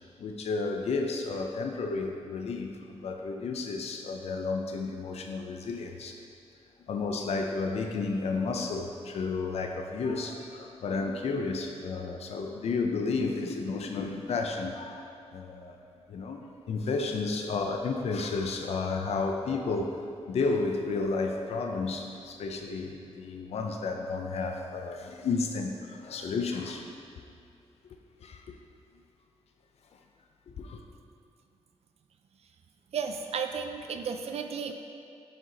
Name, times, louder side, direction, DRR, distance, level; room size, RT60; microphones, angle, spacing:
voice 1, 0.2-6.2 6.9-15.8 16.1-20.0 20.3-26.9 28.2-28.5 30.6-30.8, left 4 dB, 70° left, 3 dB, 0.5 m, -32 dB
voice 2, 32.9-34.7, right 6 dB, 65° right, 6 dB, 0.4 m, -33 dB
6.3 x 4.4 x 3.8 m, 2.5 s
cardioid pair, 100°, 11 cm